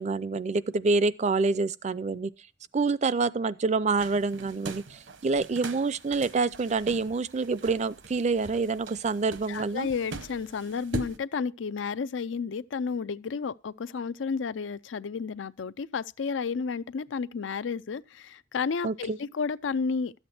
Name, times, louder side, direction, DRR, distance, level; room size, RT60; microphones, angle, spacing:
voice 1, 0.0-2.3 2.7-9.9 18.8-19.2, right 4 dB, 40° right, 0.5 m, -27 dB
sound 1, 4.0-11.2, right 2 dB, 75° right, 1.0 m, -41 dB
voice 2, 9.5-20.1, left 5 dB, 80° left, 0.5 m, -32 dB
13.0 x 8.1 x 4.2 m
head